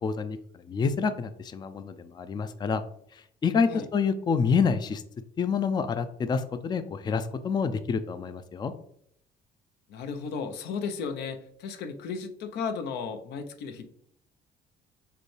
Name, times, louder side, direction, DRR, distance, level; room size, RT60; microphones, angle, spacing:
voice 1, 0.0-2.8 3.1-5.0 5.4-8.7, left 5 dB, 25° left, 11 dB, 0.4 m, -28 dB
voice 2, 9.9-13.9, left 5 dB, 80° left, 8 dB, 0.7 m, -34 dB
6.6 x 2.3 x 3.2 m, 0.68 s
cardioid pair, 110°, 17 cm